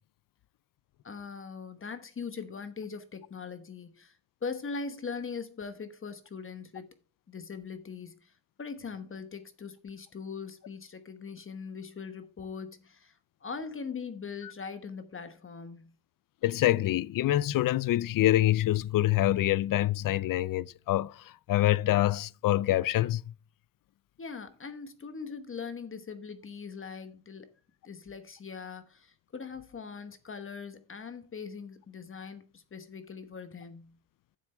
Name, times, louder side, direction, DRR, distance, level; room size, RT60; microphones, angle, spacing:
voice 1, 1.0-6.9 7.3-8.3 8.6-15.9 24.2-27.5 27.8-33.9, left 5 dB, 25° left, 1.1 m, -41 dB
voice 2, 16.4-23.2, left 14 dB, 45° left, 0.4 m, -26 dB
9.6 x 7.3 x 3.3 m
cardioid pair, 140°, 47 cm